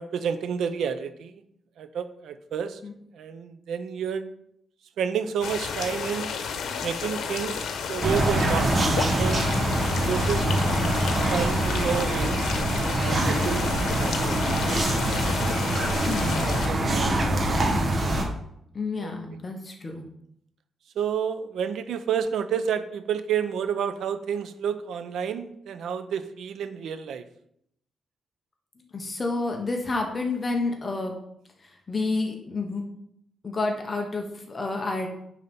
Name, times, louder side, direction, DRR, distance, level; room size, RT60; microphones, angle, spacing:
voice 1, 0.0-1.3 1.8-2.8 3.1-4.3 5.0-6.3 6.8-8.7 9.2-9.5 10.1-11.0 11.3-12.4 13.0-15.1 16.4-17.8 19.0-19.1 21.0-27.2, right 7 dB, 80° right, 11 dB, 0.7 m, -30 dB
sound 1, 5.4-16.7, left 6 dB, 85° left, 1.0 m, -32 dB
sound 2, 8.0-18.2, right 1 dB, 35° right, 1.5 m, -24 dB
voice 2, 16.1-16.5 18.7-20.1 28.9-31.1 31.9-32.8 33.4-35.1, left 3 dB, 25° left, 2 dB, 1.2 m, -29 dB
9.4 x 4.1 x 5.5 m, 0.73 s
wide cardioid pair, 145°, 0 cm